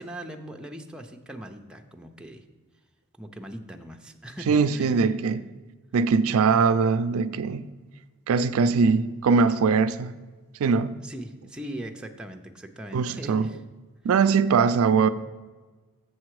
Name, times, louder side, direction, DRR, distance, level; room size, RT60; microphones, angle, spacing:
voice 1, 0.0-2.4 3.2-5.0 11.0-13.6, right 1 dB, 5° right, 0.5 m, -40 dB
voice 2, 4.5-5.5 5.9-7.7 8.3-10.2 10.6-11.0 12.9-13.5 14.0-15.1, right 5 dB, 70° right, 0.4 m, -21 dB
7.6 x 6.6 x 4.7 m
head